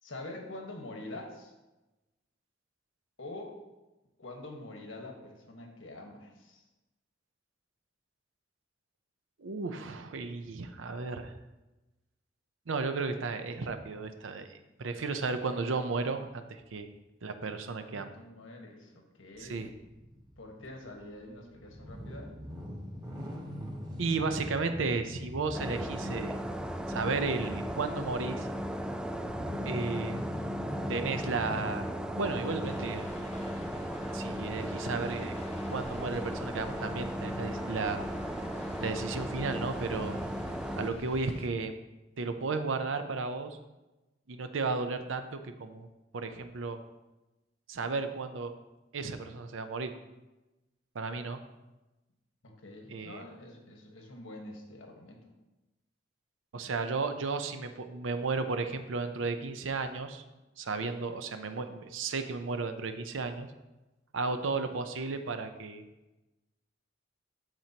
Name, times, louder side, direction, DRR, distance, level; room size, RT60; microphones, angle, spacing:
voice 1, 0.0-1.5 3.2-3.6 4.2-6.6 17.8-19.7 20.4-22.3 52.4-55.2, left 2 dB, 85° left, 2 dB, 1.4 m, -46 dB
voice 2, 9.4-11.3 12.7-16.4 16.7-16.9 17.2-18.1 19.4-19.7 24.0-26.3 26.9-28.5 29.7-30.4 30.9-31.9 32.1-33.1 34.1-35.4 35.7-38.0 38.8-40.2 40.8-41.8 42.2-43.6 44.3-45.9 46.1-46.8 47.7-48.5 48.9-49.9 50.9-51.4 52.9-53.2 56.5-60.2 60.6-63.5 64.1-65.8, right 4 dB, 80° right, 8 dB, 0.6 m, -34 dB
sound 1, 19.3-31.6, equal, 20° right, 1.2 m, -43 dB
sound 2, 25.5-40.9, equal, 5° right, 0.3 m, -36 dB
sound 3, 32.6-41.5, left 1 dB, 30° left, 0.7 m, -48 dB
12.5 x 4.5 x 2.9 m, 1.0 s
head